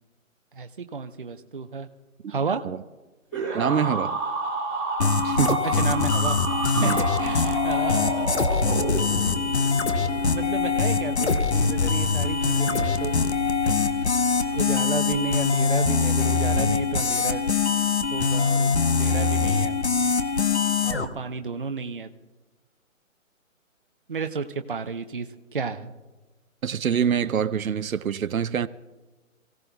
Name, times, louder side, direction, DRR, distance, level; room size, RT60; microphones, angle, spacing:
voice 1, 0.6-1.9 2.3-2.6 5.8-6.4 6.8-8.4 10.0-13.1 14.5-17.4 18.1-19.8 20.8-22.1 24.1-25.3 25.5-25.9, right 5 dB, 40° right, 0.7 m, -32 dB
sound 1, 3.3-9.4, right 3 dB, 5° left, 1.4 m, -29 dB
voice 2, 3.5-4.2 5.2-5.6 6.8-7.0 26.6-28.7, right 8 dB, 80° right, 0.7 m, -25 dB
sound 2, 5.0-21.0, left 5 dB, 55° left, 1.0 m, -23 dB
sound 3, 5.9-17.9, right 3 dB, 10° right, 1.1 m, -39 dB
28.5 x 16.5 x 2.3 m
hypercardioid pair, 175°, 41 cm